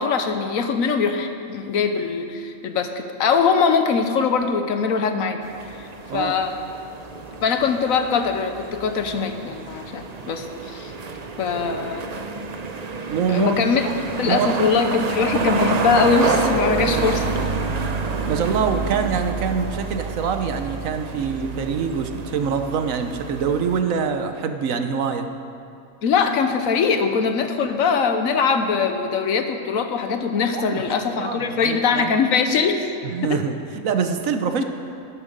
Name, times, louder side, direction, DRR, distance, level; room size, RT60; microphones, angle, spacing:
voice 1, 0.0-5.4 5.8-6.5 7.4-10.9 11.4-12.1 13.3-13.9 14.2-17.3 26.0-32.9 33.3-33.4, left 5 dB, 70° left, 7 dB, 1.2 m, -22 dB
sound 1, 5.4-23.8, right 4 dB, 40° right, 0.6 m, -28 dB
voice 2, 13.1-13.6 13.9-14.0 14.2-14.5 18.3-25.3 30.5-32.1 33.0-34.6, right 6 dB, 70° right, 7 dB, 1.2 m, -25 dB
11.0 x 10.0 x 6.6 m, 2.6 s
omnidirectional pair, 1.5 m